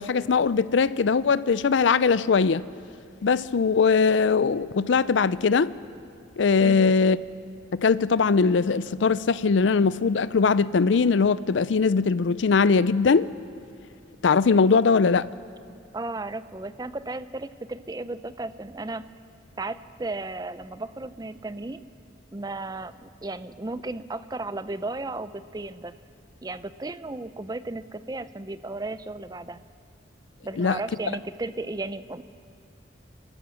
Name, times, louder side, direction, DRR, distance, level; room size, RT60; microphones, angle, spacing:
voice 1, 0.0-2.6 3.2-5.7 6.4-7.2 7.7-13.3 14.2-15.3 30.6-30.8, left 5 dB, 80° left, 0.5 m, -21 dB
voice 2, 15.9-19.0 19.6-21.8 22.3-25.9 26.4-29.6 30.4-32.2, right 2 dB, 20° right, 0.5 m, -34 dB
29.0 x 14.0 x 6.4 m
head